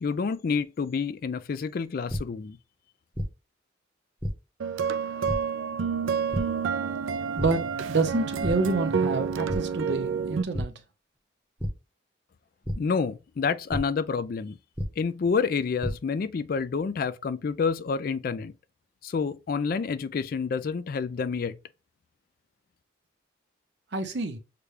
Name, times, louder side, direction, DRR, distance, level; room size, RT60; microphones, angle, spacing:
voice 1, 0.0-2.6 12.8-14.6 15.0-18.5 19.0-21.6, left 5 dB, 45° left, 0.3 m, -28 dB
sound 1, 2.1-2.2 3.1-3.3 4.2-4.3 5.3-5.4 6.3-6.4 7.4-7.5 7.9-8.1 8.4-8.5 9.5-9.6 10.5-10.7 11.6-11.7 12.6-12.7 13.7-13.8 14.8-14.9 15.6-15.9, equal, 10° right, 0.8 m, -29 dB
sound 2, 4.6-10.4, right 6 dB, 80° right, 0.4 m, -29 dB
voice 2, 7.9-10.7 23.9-24.4, right 3 dB, 60° right, 0.8 m, -28 dB
6.6 x 2.3 x 3.2 m
head